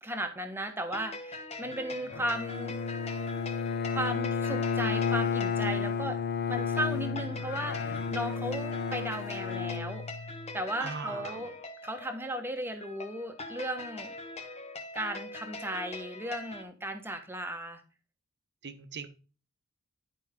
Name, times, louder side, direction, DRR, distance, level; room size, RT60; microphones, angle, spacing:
voice 1, 0.0-2.8 3.9-6.2 6.5-10.0 10.5-11.5 11.8-14.1 14.9-17.8, right 1 dB, 10° right, 6 dB, 1.2 m, -36 dB
sound 1, 0.8-16.6, left 2 dB, 30° left, 1.1 m, -43 dB
Bowed string instrument, 2.1-10.6, left 6 dB, 50° left, 0.7 m, -32 dB
voice 2, 10.8-11.4 18.6-19.1, right 5 dB, 50° right, 9 dB, 1.0 m, -39 dB
11.0 x 5.2 x 3.6 m, 0.35 s
head